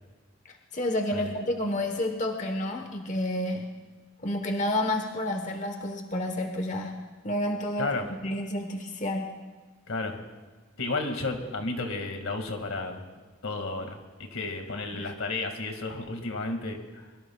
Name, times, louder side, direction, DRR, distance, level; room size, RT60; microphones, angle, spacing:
voice 1, 0.5-3.7 4.2-7.0 7.2-9.3 14.9-15.1, left 1 dB, 35° left, 4 dB, 1.1 m, -30 dB
voice 2, 9.9-10.2 10.8-13.0 13.4-14.0 14.3-17.0, left 3 dB, 85° left, 4 dB, 2.1 m, -32 dB
23.0 x 22.5 x 2.4 m, 1.3 s
head